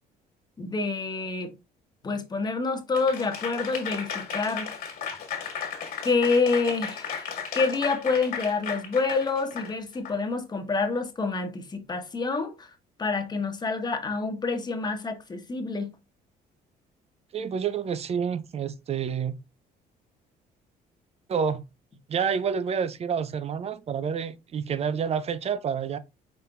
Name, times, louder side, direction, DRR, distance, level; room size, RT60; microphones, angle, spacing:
voice 1, 0.6-1.5 2.0-4.7 6.0-12.7 13.0-15.9, left 4 dB, 25° left, 1.0 m, -27 dB
Applause / Crowd, 2.9-10.2, left 6 dB, 60° left, 1.7 m, -35 dB
voice 2, 17.3-19.4 21.3-21.6 22.1-26.0, right 7 dB, 40° right, 0.5 m, -28 dB
5.4 x 4.2 x 2.2 m
cardioid pair, 110°, 17 cm